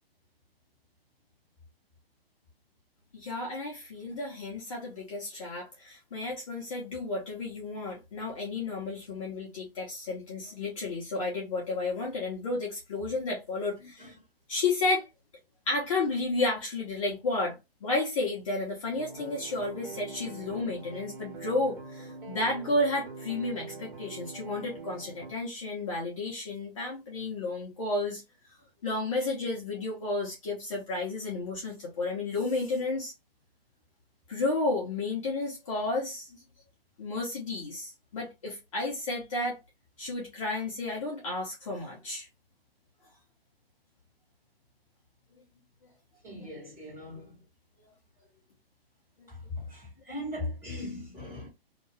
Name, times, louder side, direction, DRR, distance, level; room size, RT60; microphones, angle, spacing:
voice 1, 3.1-14.1 14.5-15.1 15.7-17.5 17.8-28.2 28.8-33.1 34.3-36.4 37.0-39.6 40.0-42.3 49.2-49.3, left 2 dB, 35° left, 0.9 m, -32 dB
voice 2, 13.8-14.1 46.2-47.4 49.3-51.5, left 2 dB, 10° right, 1.7 m, -39 dB
sound 1, 18.9-25.3, right 4 dB, 55° right, 1.5 m, -44 dB
2.8 x 2.5 x 3.2 m
hypercardioid pair, 165°, 31 cm